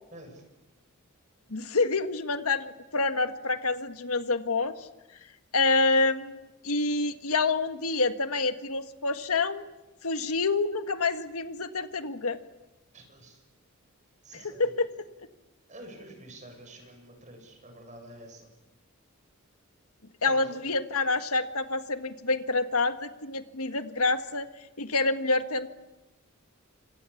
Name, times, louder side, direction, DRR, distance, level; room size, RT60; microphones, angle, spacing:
voice 1, 0.1-0.4 12.9-13.4 14.2-14.8 15.7-18.5 20.2-20.6 21.0-21.1, right 1 dB, 35° right, 4 dB, 7.7 m, -48 dB
voice 2, 1.5-4.9 5.5-9.6 10.0-12.4 14.3-14.9 20.2-24.5 24.8-25.7, left 3 dB, 85° left, 8 dB, 1.6 m, -27 dB
27.5 x 26.0 x 7.2 m, 1.0 s
head